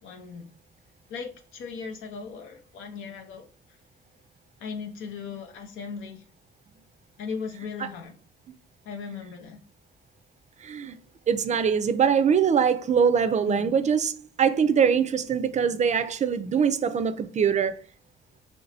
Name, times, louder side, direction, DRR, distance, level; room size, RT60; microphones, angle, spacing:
voice 1, 0.0-0.5 1.1-3.5 4.6-6.2 7.2-8.1 8.8-9.6 11.5-11.6 13.5-13.7, left 5 dB, 90° left, 0.7 m, -37 dB
voice 2, 10.6-11.0 11.3-17.7, right 7 dB, 35° right, 0.4 m, -23 dB
3.0 x 2.6 x 3.2 m
cardioid pair, 90°, 20 cm